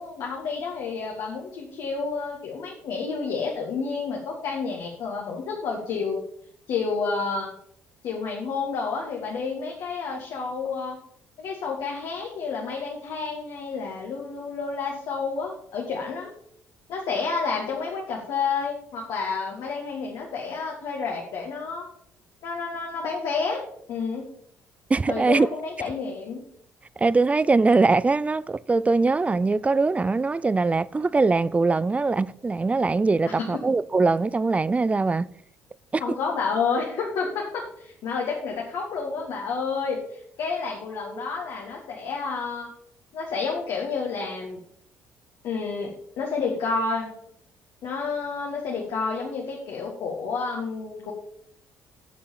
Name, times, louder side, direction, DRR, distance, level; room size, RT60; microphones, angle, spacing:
voice 1, 0.0-6.2 6.7-7.5 8.0-11.0 11.4-16.3 16.9-21.8 22.4-24.3 25.1-26.4 33.3-33.5 36.0-42.7 43.1-44.6 45.4-47.1 47.8-51.1, left 5 dB, 55° left, 1.9 m, -30 dB
voice 2, 24.9-25.5 27.0-35.3 35.9-36.2, right 3 dB, 15° right, 0.4 m, -22 dB
8.5 x 7.1 x 6.9 m
figure-of-eight pair, 50°, 7 cm